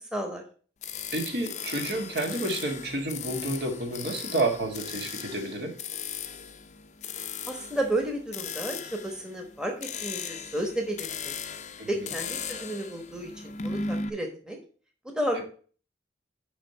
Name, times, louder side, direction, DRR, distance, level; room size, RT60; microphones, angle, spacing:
voice 1, 0.1-0.4 7.5-11.3 11.9-14.6 15.2-15.4, right 1 dB, 5° right, 2 dB, 1.1 m, -32 dB
sound 1, 0.8-14.1, left 5 dB, 40° left, 0.5 m, -37 dB
voice 2, 1.1-5.7 11.8-12.1 15.3-15.4, right 2 dB, 65° right, 2 dB, 1.7 m, -30 dB
5.3 x 5.1 x 6.5 m, 0.42 s
head